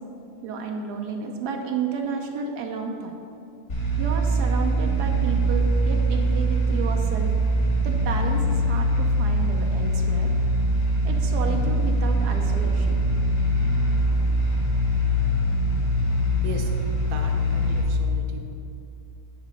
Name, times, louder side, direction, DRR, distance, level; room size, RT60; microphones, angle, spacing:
voice 1, 0.4-3.1 4.0-7.3 7.8-10.3 11.0-13.0, right 4 dB, 90° right, 2 dB, 1.3 m, -31 dB
sound 1, 3.7-17.8, right 1 dB, 70° left, 2.9 m, -22 dB
voice 2, 17.1-18.4, right 4 dB, 70° right, 2 dB, 1.3 m, -36 dB
9.5 x 4.1 x 6.2 m, 2.7 s
omnidirectional pair, 1.7 m